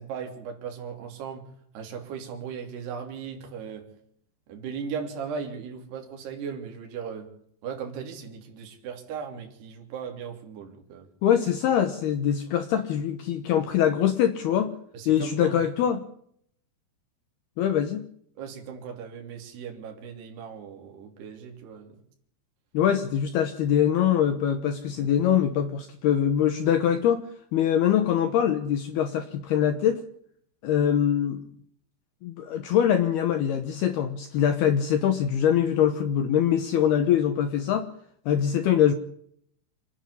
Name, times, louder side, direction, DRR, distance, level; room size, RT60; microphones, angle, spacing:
voice 1, 0.0-3.9 4.5-7.3 7.6-11.1 14.9-15.6 18.4-22.0 25.0-25.1, right 6 dB, 55° right, 3 dB, 4.9 m, -37 dB
voice 2, 11.2-14.8 15.1-16.0 17.6-18.1 22.7-27.2 27.5-30.0 30.6-31.4 32.2-37.9 38.3-38.9, left 9 dB, 75° left, 9 dB, 2.4 m, -23 dB
26.5 x 10.0 x 9.9 m, 0.67 s
omnidirectional pair, 5.9 m